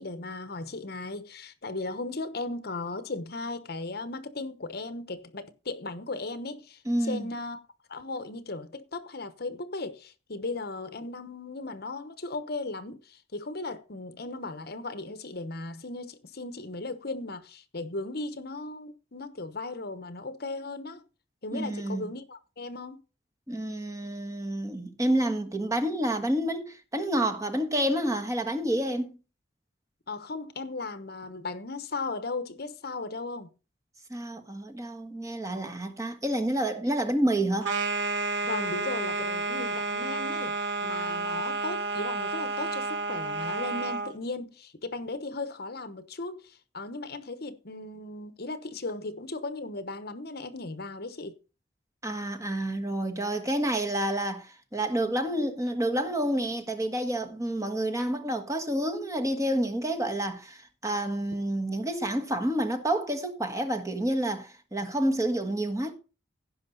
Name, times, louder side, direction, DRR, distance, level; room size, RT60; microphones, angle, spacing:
voice 1, 0.0-7.6 7.9-21.0 21.4-23.0 30.1-33.5 38.4-51.4, left 3 dB, 55° left, 1.1 m, -37 dB
voice 2, 6.9-7.2 21.5-22.1 23.5-29.1 34.1-37.7 52.0-65.9, right 1 dB, 15° right, 1.4 m, -29 dB
sound 1, 37.6-44.1, right 3 dB, 65° right, 1.5 m, -31 dB
16.5 x 5.6 x 3.9 m
head